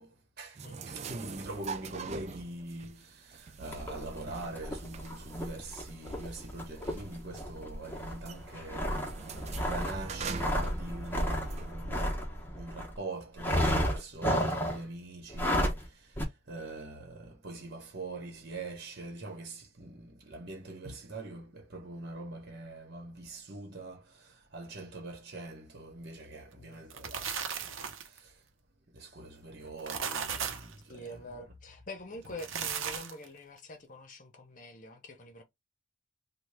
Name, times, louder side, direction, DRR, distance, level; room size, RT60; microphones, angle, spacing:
voice 1, 0.0-9.3 9.7-27.3 27.6-27.7 28.0-28.4 28.9-31.2, right 2 dB, 50° right, 1.2 m, -43 dB
sound 1, 0.5-11.7, right 5 dB, 35° right, 0.3 m, -44 dB
sound 2, 3.7-12.9 13.4-14.9 15.3-15.9 16.2-16.3, equal, 10° left, 0.9 m, -33 dB
sound 3, 26.7-28.2 29.6-30.7 32.2-33.3, right 7 dB, 75° right, 0.7 m, -36 dB
voice 2, 30.9-35.4, left 1 dB, 40° left, 0.9 m, -46 dB
3.4 x 2.3 x 3.4 m
head